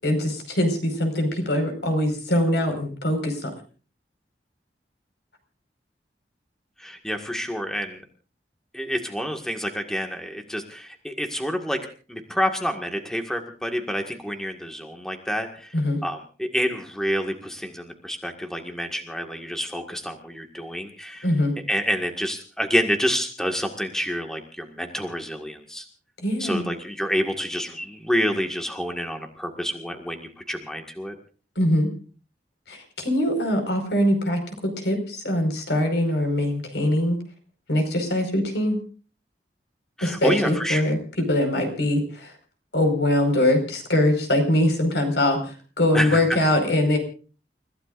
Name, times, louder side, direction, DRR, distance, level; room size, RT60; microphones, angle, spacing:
voice 1, 0.0-3.5 15.7-16.0 21.2-21.5 26.2-26.7 31.5-31.9 32.7-37.2 37.7-38.8 40.0-42.3 42.7-47.0, left 1 dB, 80° left, 5 dB, 5.2 m, -23 dB
voice 2, 6.8-8.0 8.7-11.8 12.1-15.7 16.0-21.3 21.7-25.8 26.4-31.2 40.0-40.8 45.9-46.4, equal, 5° left, 4 dB, 1.9 m, -28 dB
30.0 x 16.0 x 2.6 m, 0.38 s
head